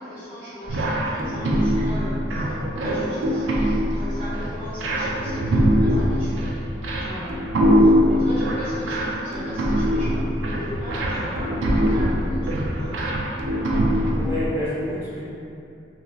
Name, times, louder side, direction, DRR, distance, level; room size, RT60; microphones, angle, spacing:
voice 1, 0.0-3.5 3.9-6.4 7.0-7.3 7.7-13.0, equal, 55° right, -18 dB, 1.3 m, -37 dB
sound 1, 0.7-14.5, equal, 85° right, 0.4 m, -22 dB
voice 2, 13.9-15.2, left 1 dB, 10° right, -11 dB, 0.9 m, -30 dB
2.9 x 2.8 x 2.3 m, 2.6 s
head